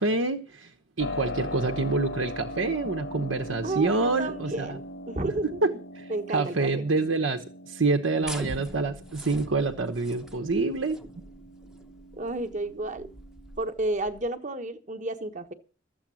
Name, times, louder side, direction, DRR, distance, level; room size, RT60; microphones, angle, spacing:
voice 1, 0.0-4.8 5.6-11.0, right 3 dB, 85° right, 1.1 m, -27 dB
Keyboard (musical), 1.0-13.7, left 1 dB, 80° left, 1.7 m, -40 dB
voice 2, 3.6-4.8 5.1-5.6 6.1-6.8 12.1-13.1 13.6-15.5, right 2 dB, 40° right, 1.2 m, -31 dB
sound 1, 8.2-14.3, equal, 5° right, 0.7 m, -43 dB
13.5 x 8.1 x 6.3 m
head